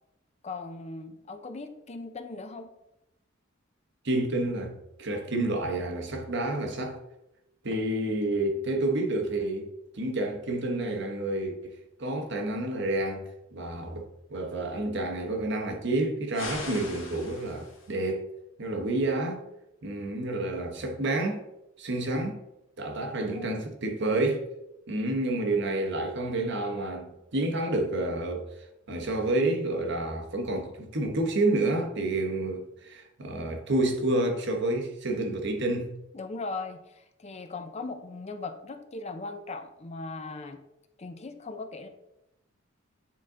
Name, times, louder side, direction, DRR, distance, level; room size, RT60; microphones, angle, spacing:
voice 1, 0.4-2.7 7.7-7.8 23.3-23.6 36.1-40.6 41.0-41.9, left 3 dB, 35° left, 0.5 m, -39 dB
voice 2, 4.0-7.0 7.6-9.7 9.9-13.2 13.5-18.2 18.6-19.4 19.8-21.4 21.8-22.4 22.8-24.4 24.9-28.5 28.9-35.9, right 2 dB, 60° right, 1.1 m, -29 dB
sound 1, 16.3-17.9, left 3 dB, 75° left, 1.7 m, -39 dB
8.8 x 3.8 x 3.8 m
head